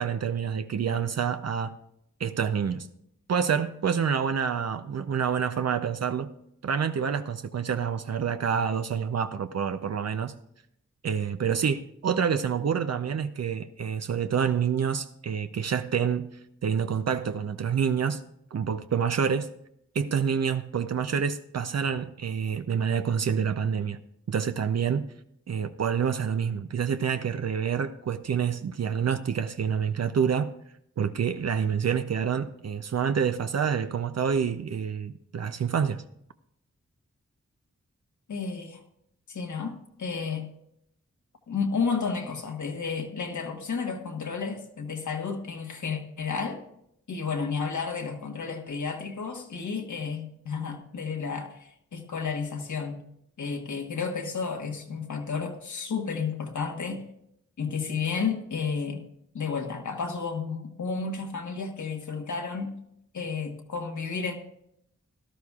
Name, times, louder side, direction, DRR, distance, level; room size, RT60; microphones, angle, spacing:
voice 1, 0.0-1.8 2.2-2.9 3.3-6.3 6.6-10.3 11.0-16.3 16.6-18.2 18.5-19.5 19.9-24.0 24.3-25.1 25.5-30.5 31.0-36.0, right 7 dB, 60° right, 0.6 m, -27 dB
voice 2, 38.3-38.8 39.3-40.5 41.5-46.6 47.1-53.0 53.4-57.0 57.6-59.0 59.3-62.7 63.1-64.3, left 5 dB, 85° left, 1.5 m, -32 dB
17.0 x 12.5 x 2.4 m
wide cardioid pair, 90°, 29 cm